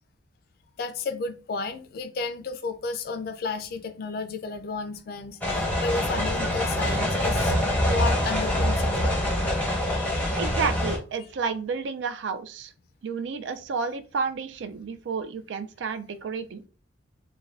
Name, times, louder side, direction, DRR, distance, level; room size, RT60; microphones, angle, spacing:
voice 1, 0.8-7.5 7.9-9.2 9.7-10.4, left 4 dB, 50° left, 0.3 m, -33 dB
sound 1, 5.4-11.0, left 1 dB, 10° left, 0.7 m, -25 dB
voice 2, 10.4-12.7 13.0-16.6, right 5 dB, 75° right, 0.3 m, -31 dB
2.4 x 2.2 x 3.2 m
head